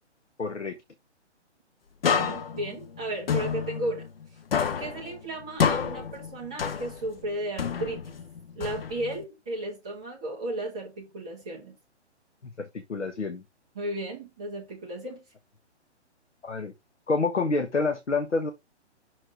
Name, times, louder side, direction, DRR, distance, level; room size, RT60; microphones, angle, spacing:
voice 1, 0.4-0.8 12.4-13.4 16.4-16.7 17.1-18.5, left 3 dB, 80° left, 1.2 m, -28 dB
sound 1, 2.0-4.3 4.5-7.2 7.6-9.2, left 7 dB, 55° left, 1.0 m, -29 dB
voice 2, 2.1-4.1 4.8-8.2 8.5-11.8 13.7-15.2, right 1 dB, 5° right, 0.4 m, -34 dB
6.3 x 4.3 x 3.7 m
figure-of-eight pair, 135°, 35 cm